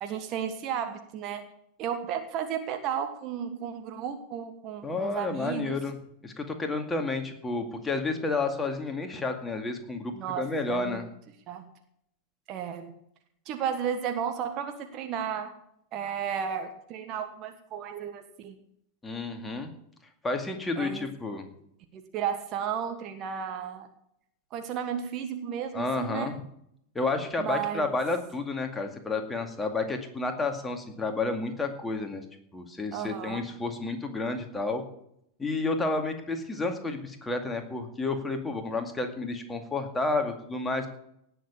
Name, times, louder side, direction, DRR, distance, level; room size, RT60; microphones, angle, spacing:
voice 1, 0.0-1.5 1.8-5.8 10.1-11.1 11.5-11.7 12.5-12.9 13.4-15.5 15.9-18.6 20.8-21.1 21.9-23.9 24.5-26.3 27.4-27.9 32.9-33.5, right 8 dB, 35° right, 7 dB, 1.5 m, -33 dB
voice 2, 4.8-6.0 6.2-11.0 19.0-19.7 20.2-21.5 25.7-26.4 26.9-32.3 32.5-34.8 35.4-40.9, left 3 dB, 10° left, 4 dB, 2.2 m, -31 dB
18.0 x 7.0 x 7.1 m, 0.73 s
figure-of-eight pair, 90°, 0 cm